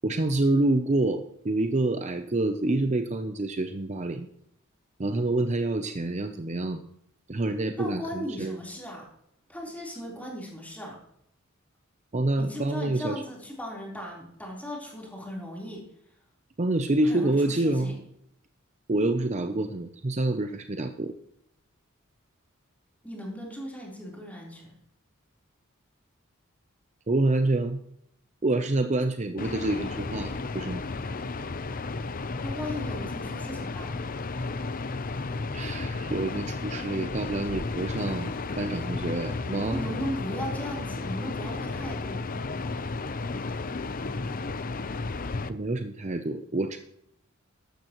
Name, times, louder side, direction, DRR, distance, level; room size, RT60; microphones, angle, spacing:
voice 1, 0.0-4.3 5.0-6.8 7.3-8.6 12.1-13.2 16.6-18.0 18.9-21.1 27.1-27.8 28.4-30.8 35.5-39.9 45.5-46.8, right 2 dB, 35° right, 7 dB, 0.6 m, -27 dB
voice 2, 7.8-9.1 9.5-10.9 12.4-15.8 17.1-18.0 23.0-24.7 32.4-34.0 39.7-42.2, equal, 5° left, -3 dB, 3.8 m, -37 dB
sound 1, 29.4-45.5, left 3 dB, 40° left, 0.7 m, -33 dB
14.0 x 12.0 x 3.1 m, 0.76 s
head